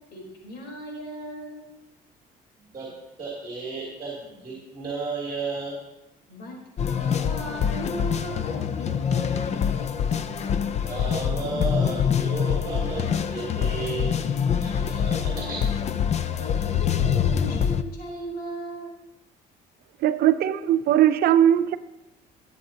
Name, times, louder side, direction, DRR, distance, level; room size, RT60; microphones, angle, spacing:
voice 1, 0.1-1.7 6.3-9.8 14.8-15.2 15.6-15.7 16.4-19.0, equal, 70° left, 4.1 m, -37 dB
voice 2, 2.6-5.8 10.7-14.2 14.5-15.6, right 4 dB, 25° right, 3.0 m, -34 dB
sound 1, 6.8-17.8, left 8 dB, 40° left, 0.6 m, -25 dB
voice 3, 20.0-21.8, right 11 dB, 65° right, 0.7 m, -19 dB
20.0 x 7.8 x 2.9 m
cardioid pair, 110°, 17 cm